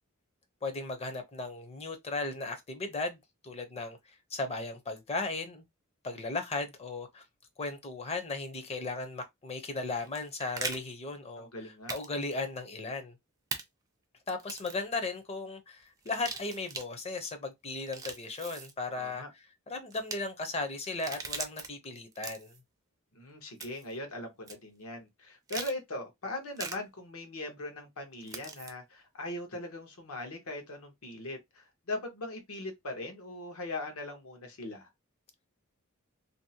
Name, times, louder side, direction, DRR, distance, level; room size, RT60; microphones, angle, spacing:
voice 1, 0.6-5.6 6.0-7.2 7.6-13.1 14.3-19.2 19.7-22.5, left 3 dB, 30° left, 0.6 m, -36 dB
sound 1, 10.0-10.8 11.9-12.1 12.3-12.4 13.5-13.6 14.4-14.8 16.0-16.9 17.8-18.7 19.9-20.2 20.9-21.7 22.1-22.6 23.6-23.9 24.5-24.6 25.5-25.7 26.6-26.8 28.3-28.7, right 4 dB, 15° right, 0.4 m, -39 dB
voice 2, 11.4-12.0 19.0-19.3 23.1-34.9, left 2 dB, 75° left, 0.9 m, -40 dB
2.7 x 2.0 x 2.7 m
head